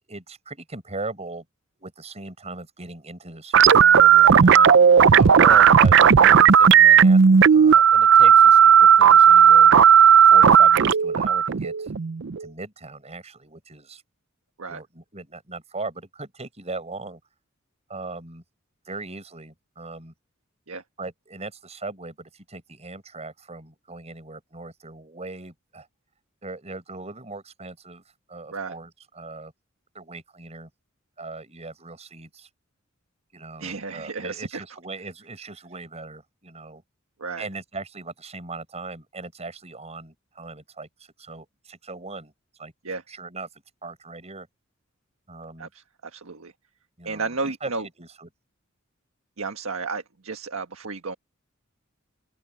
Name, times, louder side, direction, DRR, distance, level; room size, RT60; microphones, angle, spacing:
voice 1, 0.1-1.4 1.8-4.8 5.3-9.7 10.3-11.9 12.4-14.0 14.7-17.2 17.9-18.4 18.8-20.1 21.0-25.9 26.4-28.0 28.3-29.5 29.9-30.7 31.2-32.5 33.3-36.8 37.4-40.9 41.2-42.3 42.6-42.7 43.1-43.5 43.8-44.5 45.3-45.7 47.0-47.7 48.0-48.3, right 3 dB, 30° right, 6.6 m, -38 dB
sound 1, 3.5-12.5, right 7 dB, 60° right, 0.5 m, -13 dB
voice 2, 33.6-34.6 37.2-37.5 42.8-43.0 45.6-46.5 47.0-47.9 49.4-51.1, right 4 dB, 85° right, 1.5 m, -33 dB
open air
head